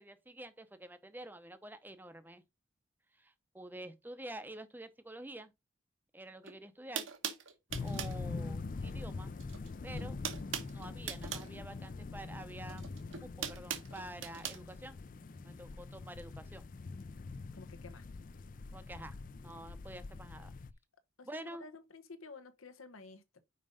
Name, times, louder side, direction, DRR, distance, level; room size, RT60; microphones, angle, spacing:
voice 1, 0.0-2.4 3.2-5.5 6.1-7.1 7.8-9.3 9.8-10.2 10.7-12.9 13.2-15.0 15.4-16.6 18.7-19.2 19.4-20.5 21.2-21.6, right 1 dB, 10° right, 0.6 m, -48 dB
sound 1, 6.4-6.5 6.9-8.2 9.4-9.7 9.9-11.5 12.7-14.6, right 8 dB, 70° right, 1.1 m, -40 dB
sound 2, 7.7-20.7, left 3 dB, 40° left, 0.4 m, -44 dB
voice 2, 17.5-18.1 21.2-23.4, left 3 dB, 90° left, 1.0 m, -52 dB
5.5 x 5.2 x 5.0 m
head